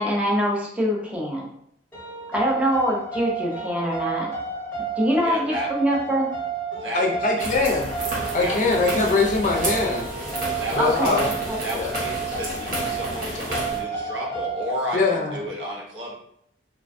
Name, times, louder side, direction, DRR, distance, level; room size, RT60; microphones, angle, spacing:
voice 1, 0.0-1.5 2.3-4.3 5.0-6.3 10.8-11.6, equal, 5° right, -3 dB, 0.5 m, -24 dB
sound 1, 1.9-14.7, right 5 dB, 10° left, 1.0 m, -31 dB
voice 2, 5.2-5.7 6.8-7.7 8.3-9.1 10.6-11.3 11.6-16.1, equal, 80° right, -3 dB, 0.9 m, -32 dB
voice 3, 6.9-7.9 8.3-10.1 10.7-11.4 11.7-11.9 14.9-15.4, left 3 dB, 45° left, 0 dB, 0.5 m, -22 dB
sound 2, 7.4-13.8, right 1 dB, 50° right, 0.8 m, -31 dB
3.1 x 2.2 x 2.5 m, 0.71 s
head